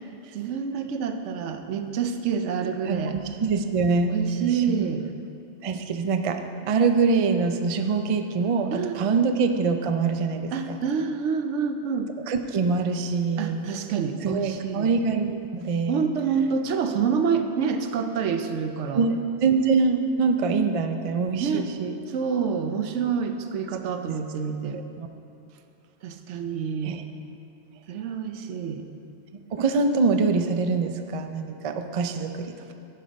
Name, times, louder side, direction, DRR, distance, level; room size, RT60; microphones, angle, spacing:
voice 1, 0.3-3.2 4.1-5.1 8.7-9.2 10.5-12.1 13.4-14.9 15.9-19.1 21.4-21.7 22.1-24.8 26.0-27.0 27.9-28.9, right 6 dB, 85° right, 7 dB, 1.0 m, -27 dB
voice 2, 2.9-4.1 4.4-4.8 5.6-10.8 12.3-13.7 14.2-16.1 18.9-22.0 24.1-24.2 24.7-25.1 26.8-27.0 29.5-32.7, right 4 dB, 50° right, 7 dB, 0.4 m, -24 dB
11.5 x 5.5 x 5.1 m, 2.8 s
omnidirectional pair, 1.2 m